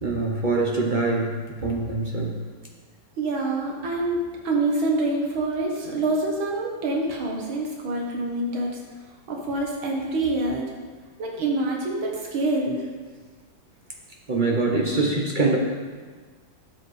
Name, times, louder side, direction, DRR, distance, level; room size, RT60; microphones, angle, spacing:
voice 1, 0.0-2.3 14.3-15.6, right 3 dB, 40° right, -1 dB, 0.6 m, -24 dB
voice 2, 3.2-4.2 4.4-8.7 9.3-10.7 11.2-12.9, right 2 dB, 80° right, 0 dB, 2.0 m, -26 dB
12.0 x 7.8 x 3.2 m, 1.5 s
omnidirectional pair, 2.2 m